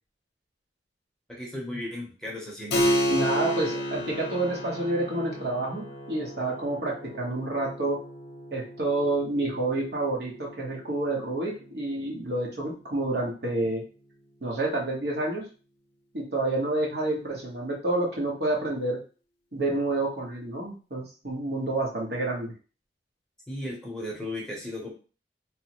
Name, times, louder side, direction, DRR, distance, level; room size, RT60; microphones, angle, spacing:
voice 1, 1.3-2.9 23.5-24.9, left 1 dB, 5° left, -3 dB, 0.7 m, -35 dB
Keyboard (musical), 2.7-12.9, equal, 60° left, 0.6 m, -32 dB
voice 2, 3.1-8.0 8.5-13.8 14.4-15.4 16.1-19.0 19.5-22.5, right 2 dB, 70° right, -2 dB, 1.1 m, -29 dB
3.2 x 2.0 x 2.9 m, 0.36 s
head